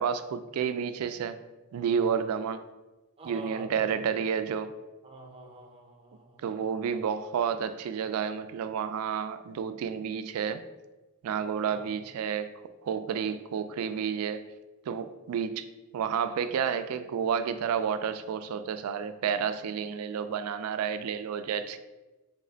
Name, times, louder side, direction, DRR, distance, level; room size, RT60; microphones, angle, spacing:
voice 1, 0.0-1.4 1.7-2.6 3.3-4.7 6.4-10.6 11.2-12.5 12.8-14.4 14.9-15.7 15.9-21.8, right 7 dB, 80° right, 12 dB, 0.3 m, -30 dB
voice 2, 3.2-4.5 5.0-6.5 11.7-11.9, right 2 dB, 25° right, 1 dB, 0.6 m, -46 dB
3.2 x 3.2 x 3.8 m, 1.1 s
head